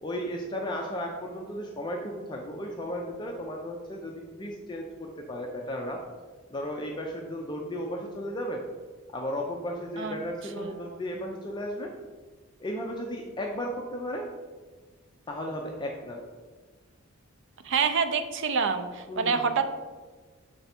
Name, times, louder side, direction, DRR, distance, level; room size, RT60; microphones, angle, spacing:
voice 1, 0.0-6.0 6.5-8.6 9.1-11.9 12.6-14.2 15.3-16.2 19.1-19.5, equal, 20° left, 0 dB, 0.4 m, -34 dB
voice 2, 10.6-11.0 17.6-19.6, right 5 dB, 55° right, 8 dB, 0.5 m, -27 dB
6.9 x 3.4 x 4.2 m, 1.4 s
head